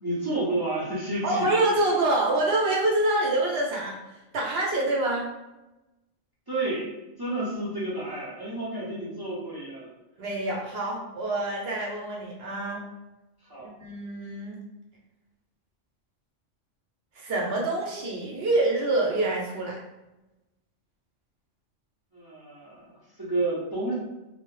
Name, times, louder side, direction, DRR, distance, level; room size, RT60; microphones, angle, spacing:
voice 1, 0.0-1.5 6.5-6.9 7.2-9.9 13.5-13.7 22.1-23.9, right 2 dB, 35° right, -8 dB, 0.3 m, -30 dB
voice 2, 1.2-4.0 4.3-5.3 10.2-12.8 13.6-14.6 17.2-19.8, right 2 dB, 65° right, -2 dB, 0.7 m, -26 dB
2.1 x 2.0 x 3.0 m, 1.0 s
omnidirectional pair, 1.3 m